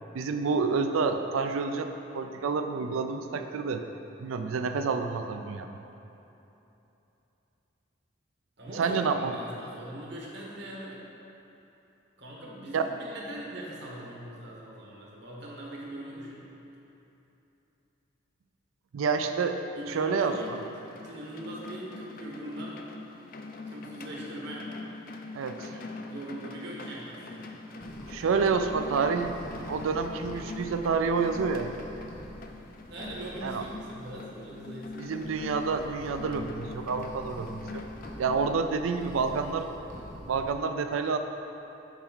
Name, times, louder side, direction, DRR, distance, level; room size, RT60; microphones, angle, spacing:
voice 1, 0.1-3.9 4.2-5.7 8.7-9.3 12.7-12.9 18.9-19.6 19.9-20.6 25.3-25.7 28.1-29.3 29.7-31.7 33.4-33.6 35.0-37.9 38.2-39.7 40.3-41.2, right 5 dB, 80° right, 7 dB, 0.4 m, -28 dB
voice 2, 8.6-11.0 12.2-16.4 19.7-20.5 20.9-22.8 23.7-24.7 25.6-27.6 32.8-35.2, right 1 dB, 55° right, -4 dB, 1.1 m, -41 dB
sound 1, 20.2-38.5, left 3 dB, 45° left, 0.3 m, -43 dB
sound 2, 27.8-40.5, equal, 60° left, 1.3 m, -46 dB
7.1 x 4.4 x 3.9 m, 3.0 s
head